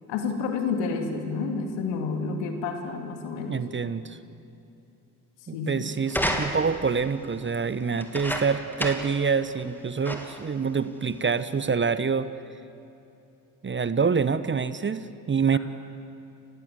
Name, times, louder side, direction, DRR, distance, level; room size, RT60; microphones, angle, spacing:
voice 1, 0.1-3.6 5.5-5.8, left 4 dB, 70° left, 5 dB, 2.7 m, -29 dB
voice 2, 3.5-4.2 5.5-12.3 13.6-15.6, right 5 dB, 25° right, 14 dB, 1.0 m, -26 dB
sound 1, 6.1-6.9 8.0-9.2 9.6-9.7 10.0-10.5 11.3-11.4, equal, 5° left, 3.0 m, -30 dB
29.0 x 16.0 x 8.3 m, 2.8 s
hypercardioid pair, 50°, 45 cm